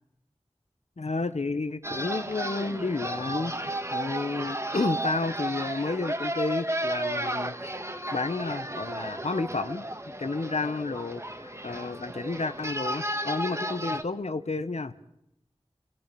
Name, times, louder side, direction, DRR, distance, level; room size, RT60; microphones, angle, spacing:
voice 1, 1.0-7.7 8.1-9.9 10.2-14.9, left 3 dB, 75° left, 12 dB, 1.1 m, -31 dB
sound 1, 1.8-14.0, right 1 dB, 25° right, 1.8 m, -33 dB
28.5 x 18.5 x 7.0 m, 0.82 s
wide cardioid pair, 45°, 11 cm